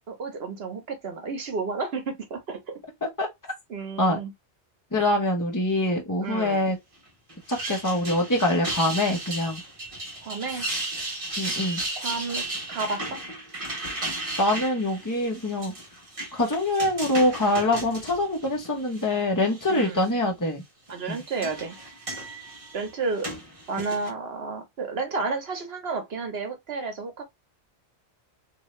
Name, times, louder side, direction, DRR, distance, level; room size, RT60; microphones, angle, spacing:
voice 1, 0.0-2.8 3.7-4.3 6.2-6.8 10.2-10.7 12.0-13.2 19.7-20.2 20.9-21.8 22.7-23.3 23.7-27.2, right 4 dB, 65° right, 1.1 m, -32 dB
voice 2, 4.9-6.8 7.5-9.6 11.4-11.8 14.4-15.7 16.3-20.6 21.1-21.2, left 1 dB, 20° left, 1.0 m, -24 dB
sound 1, 7.3-19.1 19.5-20.1 20.9-24.1, right 2 dB, 30° right, 1.1 m, -35 dB
2.8 x 2.7 x 3.1 m
omnidirectional pair, 1.1 m